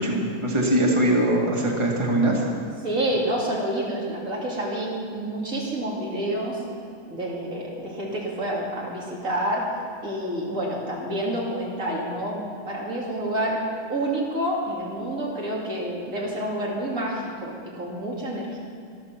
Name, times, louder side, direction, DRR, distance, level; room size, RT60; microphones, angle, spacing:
voice 1, 0.0-2.4, right 1 dB, 20° right, -2 dB, 2.0 m, -22 dB
voice 2, 2.8-6.6 7.1-9.7 10.0-13.6 13.9-18.6, right 1 dB, 85° right, -4 dB, 3.2 m, -28 dB
13.0 x 12.5 x 5.9 m, 2.4 s
omnidirectional pair, 1.4 m